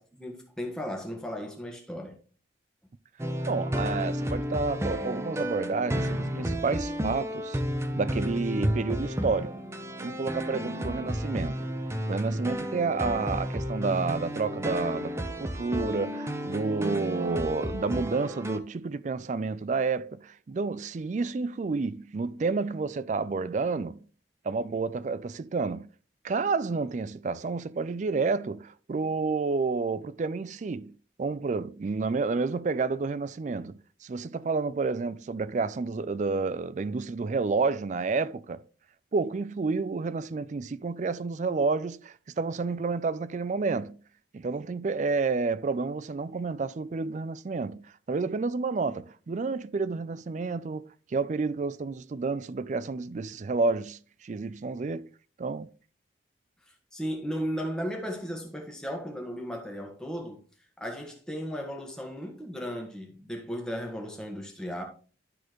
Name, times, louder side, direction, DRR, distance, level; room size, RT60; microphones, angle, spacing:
voice 1, 0.0-2.2 56.9-60.4 60.8-64.8, equal, 5° left, 1.5 m, -35 dB
sound 1, 3.2-18.6, equal, 15° right, 0.7 m, -32 dB
voice 2, 3.5-7.6 7.9-9.6 10.0-11.6 12.1-24.0 24.4-25.9 26.2-30.9 31.2-38.6 39.1-44.0 44.3-55.1 55.4-55.7, right 4 dB, 40° right, 0.3 m, -30 dB
12.5 x 4.2 x 3.1 m
head